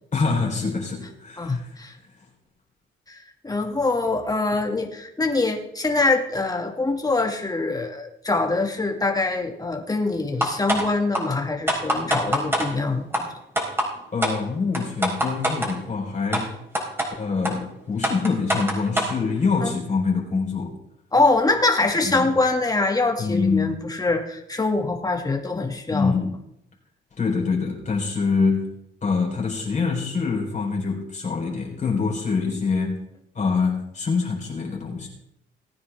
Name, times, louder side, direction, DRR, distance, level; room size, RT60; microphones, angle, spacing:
voice 1, 0.1-1.9 14.1-16.5 17.2-20.7 22.1-22.3 23.2-23.8 25.9-26.3 27.2-28.7 29.0-33.0 33.3-35.1, left 4 dB, 35° left, -1 dB, 4.0 m, -25 dB
voice 2, 1.4-1.9 3.1-13.3 19.6-19.8 21.1-26.3, left 3 dB, 20° left, 3 dB, 2.2 m, -24 dB
sound 1, 10.4-10.8 11.1-11.2 11.7-12.7 13.1-13.2 13.6-13.9 14.2-14.3 14.7-15.7 16.3-16.4 16.7-17.1 17.4-17.5 18.0-19.1, equal, 10° right, 4.4 m, -23 dB
19.0 x 9.5 x 3.5 m, 0.78 s
cardioid pair, 90°, 20 cm